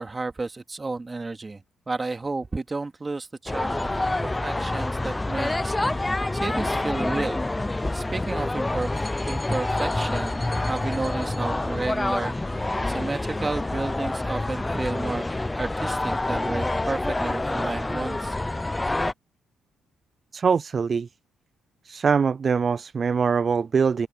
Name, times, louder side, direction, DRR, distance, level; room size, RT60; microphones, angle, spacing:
voice 1, 0.0-4.1 4.4-7.4 7.9-15.3 15.6-18.4, right 3 dB, 25° right, 2.5 m, -32 dB
sound 1, 3.5-19.1, left 2 dB, 15° left, 0.6 m, -27 dB
voice 2, 20.3-21.1 21.8-24.1, right 6 dB, 40° right, 0.4 m, -23 dB
cardioid pair, 90°, 0 cm